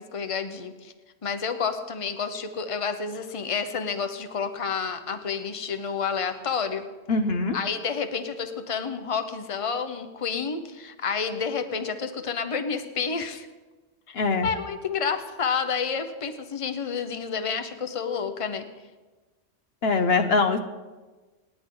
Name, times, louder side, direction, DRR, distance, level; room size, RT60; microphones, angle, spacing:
voice 1, 0.1-0.9 1.2-6.8 7.5-13.5 14.1-14.2 14.4-18.7, left 6 dB, 30° left, 8 dB, 1.0 m, -29 dB
voice 2, 7.1-7.6 14.1-14.5 19.8-20.6, left 3 dB, 70° left, 8 dB, 1.1 m, -22 dB
27.0 x 10.5 x 3.9 m, 1.2 s
omnidirectional pair, 1.1 m